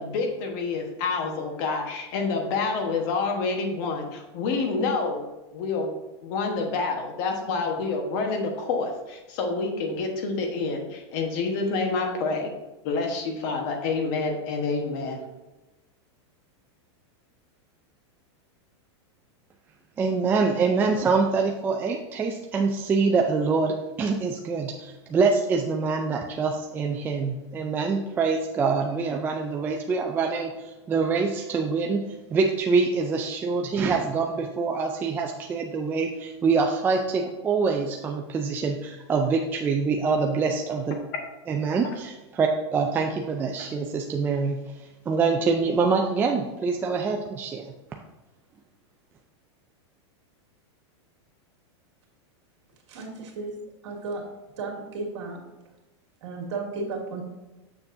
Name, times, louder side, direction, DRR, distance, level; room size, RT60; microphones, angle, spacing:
voice 1, 0.0-5.2 5.5-5.9 6.2-12.5 12.8-15.2 41.1-41.2, left 4 dB, 45° left, 4 dB, 1.2 m, -28 dB
voice 2, 20.0-32.0 32.3-41.0 41.5-47.7, right 4 dB, 15° right, 2 dB, 0.4 m, -25 dB
voice 3, 52.9-53.5 53.8-54.2 54.6-55.4 56.2-57.2, right 3 dB, 75° right, -1 dB, 2.1 m, -33 dB
7.0 x 6.7 x 2.6 m, 1.1 s
supercardioid pair, 155°, 15 cm